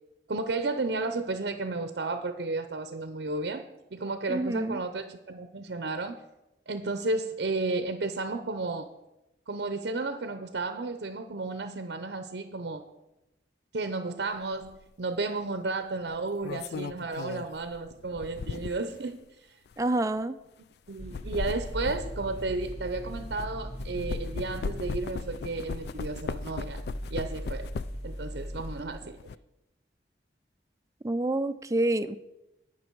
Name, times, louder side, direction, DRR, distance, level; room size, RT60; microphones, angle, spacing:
voice 1, 0.3-3.6 3.9-6.2 6.7-8.9 9.5-12.8 13.7-19.2 20.9-26.8 27.1-27.7 28.0-29.2, right 3 dB, 65° right, 9 dB, 0.6 m, -33 dB
voice 2, 4.3-4.8 19.8-20.4 31.0-32.2, right 2 dB, 15° right, 11 dB, 0.3 m, -27 dB
sound 1, 14.6-14.8 16.1-19.0 19.7-19.8 20.9-23.5 23.8-28.1 28.5-29.4, left 4 dB, 60° left, 0.3 m, -37 dB
sound 2, 21.0-28.9, equal, 35° left, 1.6 m, -39 dB
17.5 x 6.0 x 4.6 m, 0.97 s
head